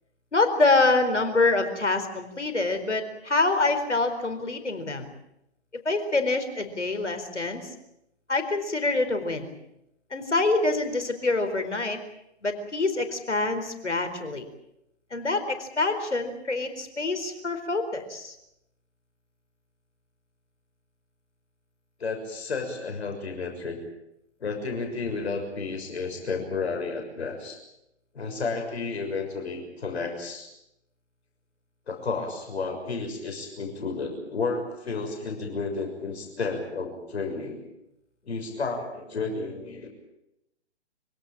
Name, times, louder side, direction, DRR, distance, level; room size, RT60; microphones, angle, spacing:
voice 1, 0.3-5.1 5.8-7.7 8.3-9.5 10.1-12.0 12.4-14.4 15.1-18.4, left 3 dB, 90° left, 7 dB, 4.5 m, -26 dB
voice 2, 22.0-23.8 24.4-27.6 28.1-30.5 31.9-37.6 38.2-39.9, left 4 dB, 65° left, 3 dB, 6.5 m, -32 dB
25.5 x 17.5 x 9.0 m, 0.85 s
figure-of-eight pair, 135°, 34 cm